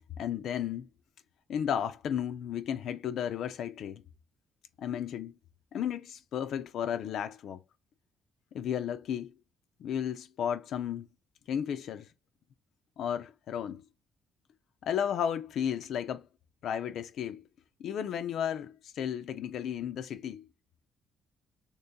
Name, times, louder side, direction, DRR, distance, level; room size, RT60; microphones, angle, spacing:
voice 1, 0.2-0.9 1.5-4.0 4.8-5.3 5.7-7.6 8.5-9.3 9.8-11.1 11.5-12.1 13.0-13.8 14.8-16.3 16.6-17.4 17.8-20.5, left 9 dB, 70° left, 0.3 m, -33 dB
2.9 x 2.7 x 3.5 m
cardioid pair, 100°, 0 cm